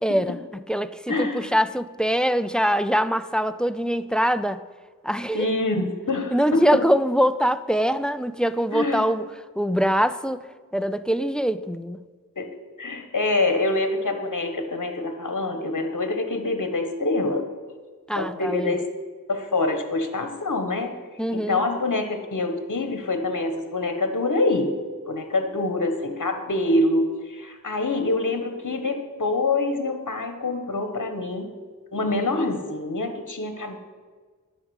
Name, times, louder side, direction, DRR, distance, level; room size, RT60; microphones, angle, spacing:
voice 1, 0.0-4.6 5.0-5.5 6.3-9.2 9.6-12.0 18.1-18.8 21.2-21.6, equal, ahead, 13 dB, 0.4 m, -23 dB
voice 2, 1.1-1.4 5.3-6.8 8.7-9.0 12.4-17.5 18.2-18.9 19.3-20.9 21.3-24.8 25.1-31.5 31.9-33.8, left 2 dB, 60° left, 7 dB, 1.3 m, -25 dB
11.0 x 5.1 x 8.0 m, 1.5 s
wide cardioid pair, 50°, 34 cm